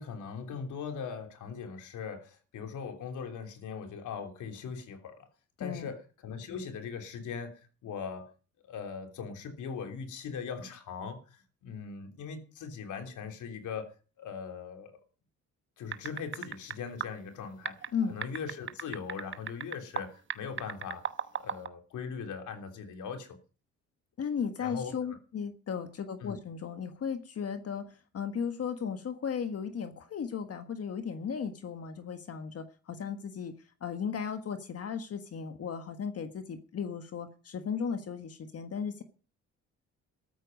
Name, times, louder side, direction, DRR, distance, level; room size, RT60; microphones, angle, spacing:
voice 1, 0.0-5.3 5.6-8.3 8.6-13.9 14.2-14.9 15.8-21.1 21.4-23.4 24.6-25.2 26.2-26.4, left 6 dB, 80° left, 3.3 m, -40 dB
voice 2, 5.6-5.9 17.9-18.2 24.2-27.9 28.1-33.5 33.8-39.0, left 7 dB, 50° left, 1.6 m, -35 dB
sound 1, 15.9-16.7 17.0-17.1 17.6-20.0 20.3-21.7, right 7 dB, 40° right, 1.1 m, -35 dB
14.0 x 13.5 x 5.3 m
cardioid pair, 90°, 30 cm